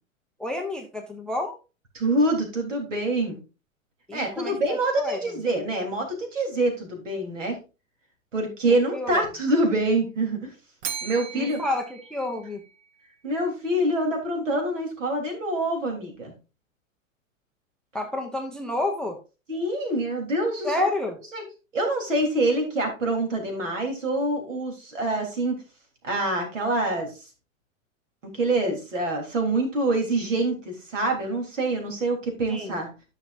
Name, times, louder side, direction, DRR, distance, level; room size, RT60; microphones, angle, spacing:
voice 1, 0.4-1.6 4.1-5.2 8.9-9.2 11.3-12.6 17.9-19.2 20.6-21.2 32.5-32.8, left 2 dB, ahead, 5 dB, 0.5 m, -30 dB
voice 2, 1.9-3.4 4.1-7.6 8.3-10.5 11.0-11.6 13.2-16.3 19.5-20.9 21.3-21.4 21.7-25.6 26.0-27.3 28.3-32.9, right 2 dB, 65° right, 3 dB, 3.4 m, -26 dB
Bell, 10.8-13.0, right 8 dB, 35° right, 1.0 m, -38 dB
13.0 x 5.9 x 2.5 m, 0.30 s
figure-of-eight pair, 100°, 41 cm